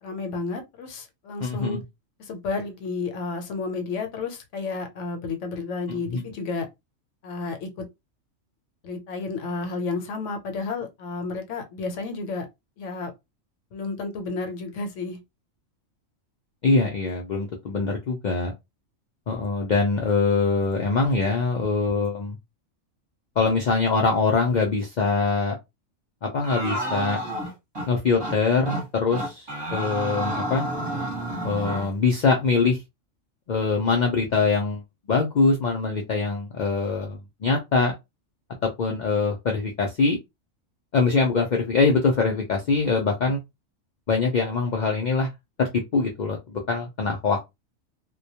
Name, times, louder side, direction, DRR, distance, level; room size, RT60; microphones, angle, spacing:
voice 1, 0.0-1.8 2.3-6.7 7.2-7.7 8.8-12.5 12.8-13.1 13.7-15.2, left 3 dB, 70° left, 0.9 m, -31 dB
voice 2, 1.4-1.8 5.9-6.2 16.6-18.5 19.3-22.4 23.4-25.6 26.2-27.2 27.9-29.5 29.7-30.6 31.4-32.8 33.5-34.8 35.1-38.0 38.6-40.2 40.9-43.4 44.1-45.3 45.6-47.4, left 4 dB, 90° left, 0.4 m, -23 dB
sound 1, 26.4-27.9 28.2-28.4 28.7-28.8 29.1-31.9, right 1 dB, 25° right, 0.7 m, -30 dB
2.2 x 2.2 x 2.7 m
omnidirectional pair, 1.4 m